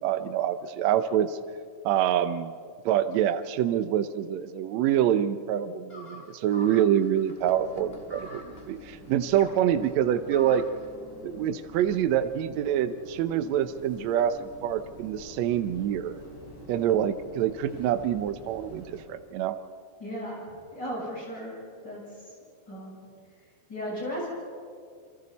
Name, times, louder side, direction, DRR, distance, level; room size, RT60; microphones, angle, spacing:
voice 1, 0.0-1.4 1.8-2.5 2.8-10.6 11.2-16.2 16.7-19.6, right 10 dB, 90° right, 10 dB, 1.5 m, -26 dB
sound 1, 5.9-10.9, left 1 dB, 45° left, 0.8 m, -47 dB
sound 2, 7.3-19.0, equal, 65° left, 8.8 m, -48 dB
voice 2, 20.0-20.4 20.7-21.5 21.8-22.0 22.7-23.0 23.7-24.3, equal, 30° left, -5 dB, 8.1 m, -35 dB
29.5 x 24.0 x 4.1 m, 2.2 s
omnidirectional pair, 4.2 m